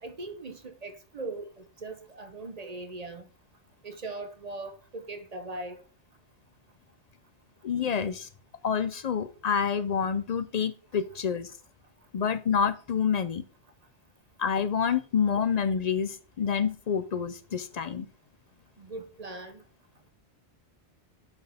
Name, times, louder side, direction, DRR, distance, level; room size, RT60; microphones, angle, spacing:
voice 1, 0.0-3.3 3.8-5.8 18.8-19.6, right 2 dB, 40° right, 0.8 m, -40 dB
voice 2, 7.6-8.3 8.6-11.5 12.1-13.5 14.4-18.1, left 7 dB, 50° left, 0.5 m, -28 dB
10.5 x 4.5 x 3.4 m
omnidirectional pair, 1.1 m